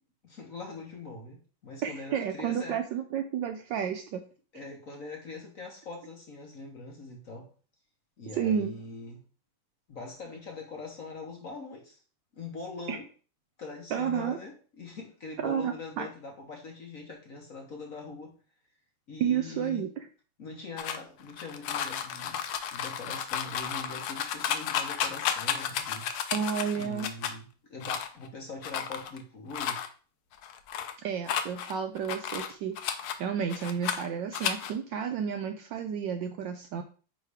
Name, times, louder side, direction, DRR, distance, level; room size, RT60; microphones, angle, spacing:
voice 1, 0.2-2.8 4.5-7.5 8.2-9.2 9.9-12.0 12.3-13.0 13.6-18.3 19.1-19.8 20.4-22.4 22.7-26.1 26.7-29.8, left 3 dB, 50° left, 1.1 m, -42 dB
voice 2, 1.8-4.2 8.3-8.7 12.9-13.0 13.9-14.4 15.4-16.1 19.2-19.9 26.3-27.1 31.0-32.8 33.2-36.8, right 8 dB, 75° right, 1.1 m, -31 dB
sound 1, 20.8-27.3 27.8-28.3 28.6-29.2 29.5-29.9 30.3-30.9 31.3-33.2 33.5-34.1 34.3-34.7, left 9 dB, 80° left, 1.5 m, -33 dB
9.0 x 3.2 x 3.4 m
omnidirectional pair, 2.4 m